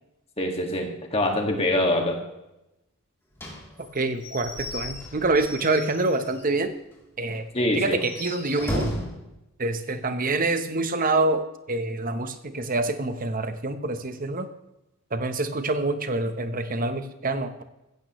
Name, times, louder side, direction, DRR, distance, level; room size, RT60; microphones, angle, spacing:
voice 1, 0.4-2.2 7.5-8.0, left 1 dB, 25° left, 2 dB, 1.9 m, -24 dB
Slam / Squeak / Wood, 3.4-6.6 6.9-7.0 7.3-7.4 7.9-9.2, equal, 10° left, 3.1 m, -34 dB
voice 2, 3.9-6.7 7.2-7.5 7.7-8.9 9.6-14.5 15.1-17.6, right 2 dB, 40° right, 9 dB, 1.0 m, -26 dB
15.5 x 14.5 x 3.1 m, 0.92 s
head